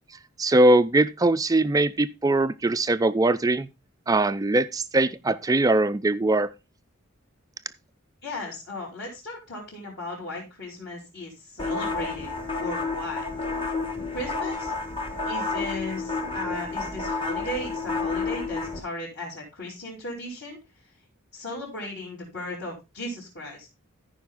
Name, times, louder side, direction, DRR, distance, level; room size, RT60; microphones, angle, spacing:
voice 1, 0.4-3.7 4.1-6.5, right 2 dB, 15° right, 0.4 m, -21 dB
voice 2, 8.2-12.3 12.6-13.3 14.1-14.7 15.3-20.6 21.3-23.7, left 1 dB, 55° left, 4.3 m, -36 dB
sound 1, 11.6-18.8, left 3 dB, 25° left, 1.3 m, -30 dB
14.0 x 5.2 x 3.7 m
head